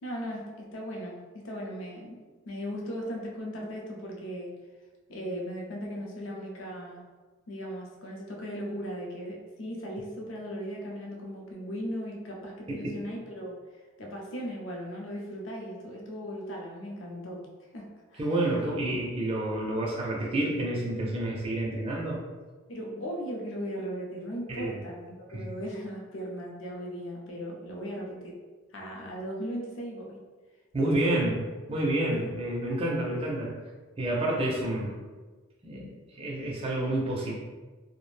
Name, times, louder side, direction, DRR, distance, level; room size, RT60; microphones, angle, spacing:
voice 1, 0.0-2.2 2.4-4.6 5.1-7.0 7.5-13.6 14.0-17.5 17.7-18.2 22.7-28.4 28.7-30.2 30.8-31.2 32.1-32.3 35.7-35.9, equal, 65° left, -1 dB, 0.5 m, -37 dB
voice 2, 18.2-22.2 24.5-24.7 25.3-25.5 30.7-33.6 34.0-35.0 35.6-37.4, right 1 dB, 25° right, -3 dB, 0.4 m, -29 dB
2.4 x 2.1 x 3.1 m, 1.3 s
head